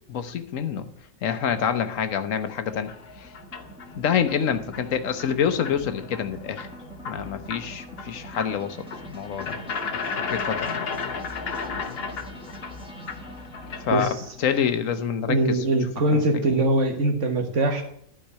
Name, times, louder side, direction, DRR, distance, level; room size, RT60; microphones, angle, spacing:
voice 1, 0.1-0.9 1.2-2.9 3.2-3.3 4.0-6.7 7.1-8.8 9.0-10.0 10.3-10.9 13.8-15.6 16.1-16.6, left 7 dB, 85° left, 10 dB, 1.3 m, -27 dB
sound 1, 2.7-14.3, left 5 dB, 55° left, 1.1 m, -35 dB
sound 2, 2.9-15.7, right 2 dB, 5° right, 1.5 m, -45 dB
voice 2, 15.3-17.8, right 2 dB, 70° right, 4 dB, 1.8 m, -22 dB
12.0 x 4.6 x 8.2 m, 0.63 s
omnidirectional pair, 1.3 m